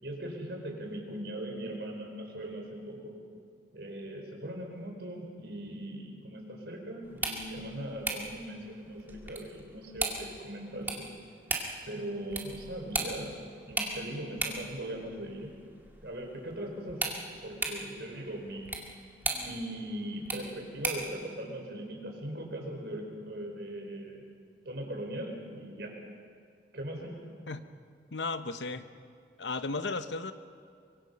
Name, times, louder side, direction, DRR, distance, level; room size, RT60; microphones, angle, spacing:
voice 1, 0.0-3.1 3.7-11.1 11.9-13.4 13.7-15.5 16.0-18.8 19.2-24.2 24.6-25.9 26.7-27.2, right 1 dB, 70° right, 2 dB, 4.4 m, -40 dB
sound 1, 7.0-21.2, right 2 dB, 10° right, 2.1 m, -38 dB
voice 2, 28.1-28.9 29.4-30.3, left 3 dB, 90° left, 10 dB, 1.0 m, -34 dB
24.5 x 23.0 x 5.4 m, 2.2 s
head